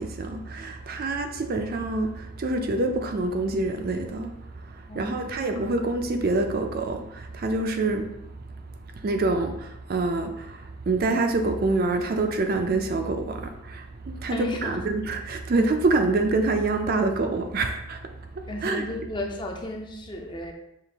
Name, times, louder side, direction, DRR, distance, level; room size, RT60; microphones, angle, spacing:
voice 1, 0.0-18.8, right 2 dB, 45° right, 0.4 m, -26 dB
voice 2, 4.9-5.3 14.3-14.8 18.5-20.5, left 1 dB, 20° left, 0.5 m, -34 dB
5.6 x 2.4 x 3.4 m
head